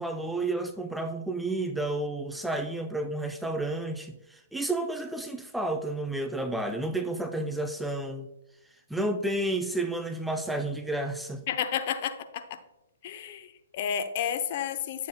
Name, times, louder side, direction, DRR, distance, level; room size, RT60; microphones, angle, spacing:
voice 1, 0.0-8.3 8.9-11.5, right 2 dB, ahead, 5 dB, 0.5 m, -31 dB
voice 2, 11.5-12.6 13.0-15.1, left 8 dB, 45° left, 9 dB, 0.7 m, -31 dB
10.0 x 7.3 x 2.2 m, 0.87 s
figure-of-eight pair, 125°, 0 cm